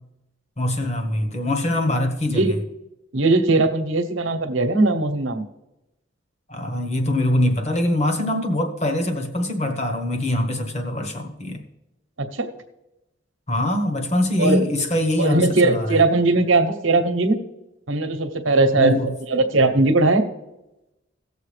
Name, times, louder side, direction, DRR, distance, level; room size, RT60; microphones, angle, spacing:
voice 1, 0.6-2.4 6.5-11.6 13.5-16.0 18.8-19.1, left 1 dB, 30° left, 6 dB, 1.1 m, -23 dB
voice 2, 3.1-5.4 12.3-12.5 14.4-14.6 15.2-17.4 17.9-20.2, right 2 dB, 75° right, 7 dB, 1.0 m, -19 dB
17.5 x 6.9 x 3.3 m, 0.95 s
head